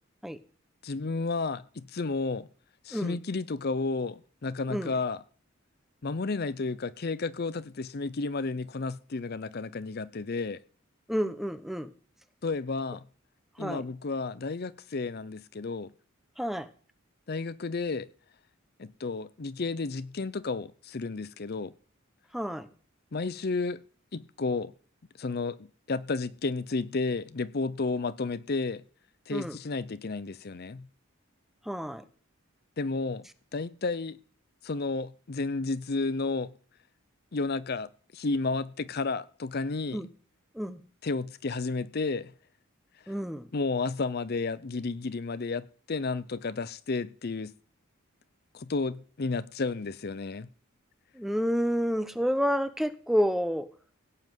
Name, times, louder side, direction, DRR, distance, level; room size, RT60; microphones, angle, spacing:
voice 1, 0.8-2.5 2.8-5.2 6.0-10.6 12.4-13.0 13.6-15.9 17.3-18.1 18.8-21.7 23.1-23.8 24.1-24.7 25.2-28.8 29.3-30.9 32.8-33.2 33.5-34.2 34.6-36.5 37.3-40.0 41.0-42.3 43.1-43.2 43.5-47.5 48.5-50.5, left 3 dB, 45° left, 0.6 m, -32 dB
voice 2, 11.1-11.9 13.6-13.8 16.4-16.7 22.3-22.7 29.3-29.6 31.6-32.0 39.9-40.1 40.5-40.8 43.1-43.5 51.1-53.7, equal, ahead, 0.8 m, -29 dB
17.0 x 5.8 x 9.1 m
head